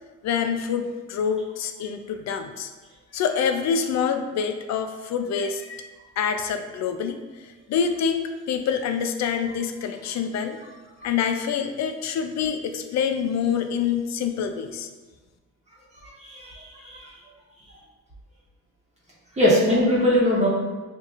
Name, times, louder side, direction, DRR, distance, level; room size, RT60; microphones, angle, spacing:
voice 1, 0.2-2.7 3.1-5.6 6.2-10.6 11.0-14.9, left 7 dB, 60° left, 7 dB, 0.5 m, -26 dB
voice 2, 16.0-17.1 19.4-20.5, left 1 dB, 20° right, -6 dB, 1.1 m, -21 dB
5.6 x 2.7 x 2.4 m, 1.3 s
cardioid pair, 90°, 30 cm